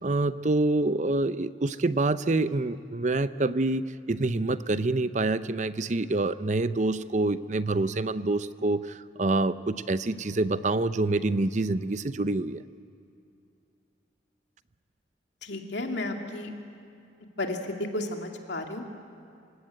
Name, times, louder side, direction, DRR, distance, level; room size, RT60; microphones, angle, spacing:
voice 1, 0.0-12.6, right 2 dB, 40° right, 14 dB, 0.6 m, -26 dB
voice 2, 15.4-16.5 17.4-18.8, left 2 dB, 70° left, 3 dB, 2.5 m, -33 dB
27.0 x 16.5 x 9.1 m, 2.6 s
head